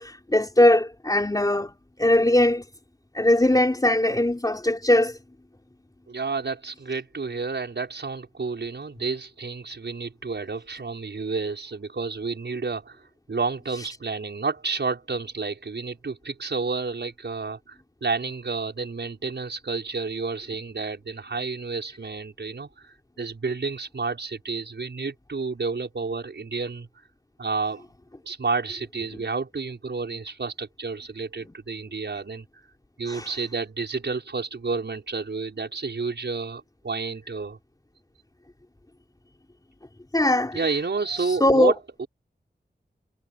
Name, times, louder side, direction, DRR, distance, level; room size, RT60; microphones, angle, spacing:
voice 1, 0.0-1.7 2.0-2.6 3.1-5.2 33.1-33.3 40.1-40.6 41.2-41.7, left 1 dB, 20° left, 4.3 m, -20 dB
voice 2, 6.1-13.0 13.3-26.9 27.4-27.8 28.3-32.4 33.0-37.6 40.5-42.1, right 4 dB, 75° right, 5.9 m, -30 dB
wide cardioid pair, 85°, 18 cm